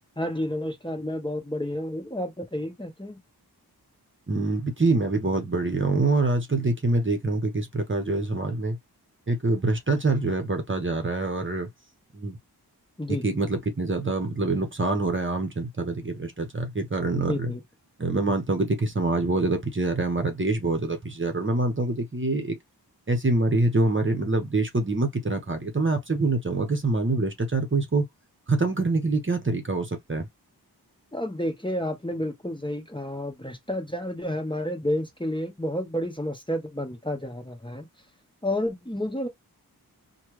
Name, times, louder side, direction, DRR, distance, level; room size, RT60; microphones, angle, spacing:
voice 1, 0.2-3.2 13.0-13.2 17.1-17.6 31.1-37.9 38.4-39.3, left 1 dB, 10° left, 1.0 m, -30 dB
voice 2, 4.3-8.8 9.3-11.7 12.1-12.4 13.2-17.5 18.0-22.5 23.1-28.1 28.5-30.3, right 2 dB, 30° right, 0.9 m, -25 dB
3.3 x 2.2 x 3.0 m
wide cardioid pair, 65°, 39 cm